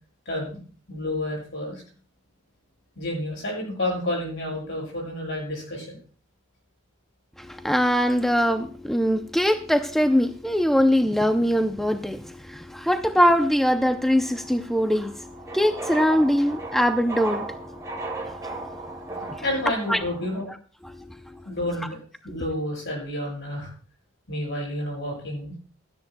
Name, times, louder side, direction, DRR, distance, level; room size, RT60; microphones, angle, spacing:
voice 1, 0.3-0.6 0.9-1.8 3.0-6.0 19.4-20.5 21.5-22.0 22.2-23.7 24.3-25.5, left 1 dB, 65° left, -1 dB, 7.6 m, -30 dB
voice 2, 7.6-15.1 15.5-17.5 19.9-20.0, equal, ahead, 7 dB, 0.5 m, -22 dB
sound 1, 13.9-20.4, right 3 dB, 15° right, 2.3 m, -36 dB
16.5 x 13.0 x 2.2 m, 0.40 s
head